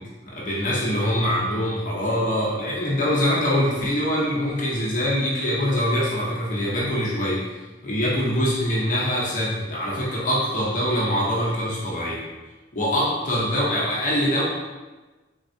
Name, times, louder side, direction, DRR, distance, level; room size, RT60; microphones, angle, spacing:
voice 1, 0.2-7.6 7.8-12.2 12.7-14.4, equal, 45° left, -6 dB, 0.9 m, -24 dB
4.0 x 3.3 x 2.7 m, 1.2 s
head